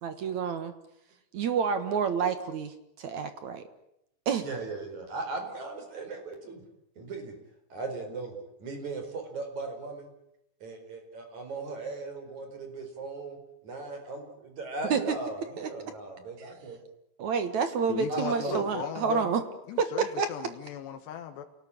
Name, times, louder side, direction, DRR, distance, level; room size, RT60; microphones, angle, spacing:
voice 1, 0.0-0.7 1.3-3.6 4.3-4.5 14.9-15.2 15.6-15.7 16.4-16.5 17.2-19.4 19.8-20.3, right 6 dB, 60° right, 10 dB, 2.2 m, -29 dB
voice 2, 4.4-6.6 7.0-7.3 7.7-8.3 8.6-10.1 10.6-13.4 13.6-16.8 18.1-19.1, right 3 dB, 45° right, 5 dB, 5.8 m, -37 dB
voice 3, 17.9-21.4, left 10 dB, 80° left, 6 dB, 3.7 m, -37 dB
28.0 x 18.5 x 10.0 m, 0.80 s
omnidirectional pair, 4.8 m